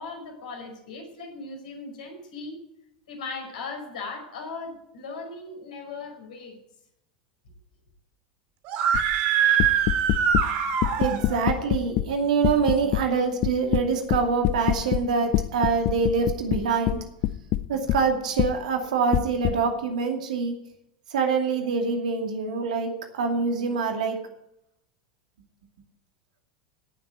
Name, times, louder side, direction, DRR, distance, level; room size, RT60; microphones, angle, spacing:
voice 1, 0.0-2.6 3.1-6.6, left 3 dB, 70° left, 2 dB, 5.6 m, -38 dB
Screaming, 8.7-11.5, right 8 dB, 50° right, 2.4 m, -23 dB
sound 1, 8.9-9.2 9.6-10.5 10.8-12.1 12.4-13.0 13.4-15.1 15.3-18.0 18.4-18.5 19.1-19.5, left 15 dB, 45° left, 0.6 m, -24 dB
voice 2, 11.0-17.0 17.7-20.5 21.1-24.2, right 5 dB, 65° right, 4 dB, 2.5 m, -25 dB
17.5 x 7.6 x 9.4 m, 0.79 s
figure-of-eight pair, 80°, 4 cm